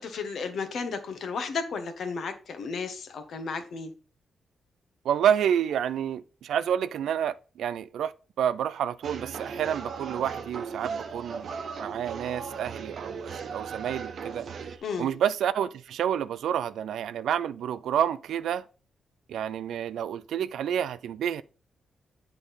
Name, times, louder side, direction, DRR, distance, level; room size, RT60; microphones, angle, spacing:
voice 1, 0.0-3.9 14.8-15.1, left 5 dB, 70° left, 1.2 m, -33 dB
voice 2, 5.0-8.1 8.4-14.5 15.0-18.6 19.3-21.4, right 9 dB, 90° right, 0.4 m, -29 dB
sound 1, 9.0-14.8, right 6 dB, 65° right, 0.8 m, -37 dB
8.3 x 3.8 x 5.4 m
cardioid pair, 95°, 0 cm